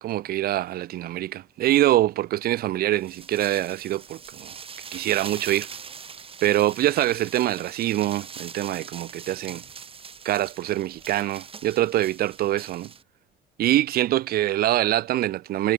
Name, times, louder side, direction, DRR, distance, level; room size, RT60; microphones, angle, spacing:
voice 1, 0.0-4.6 4.9-5.7 6.4-9.6 10.2-12.9 13.6-15.7, right 14 dB, 65° right, 0.7 m, -24 dB
sound 1, 2.9-13.0, right 6 dB, 35° right, 3.7 m, -42 dB
cardioid pair, 110°, 17 cm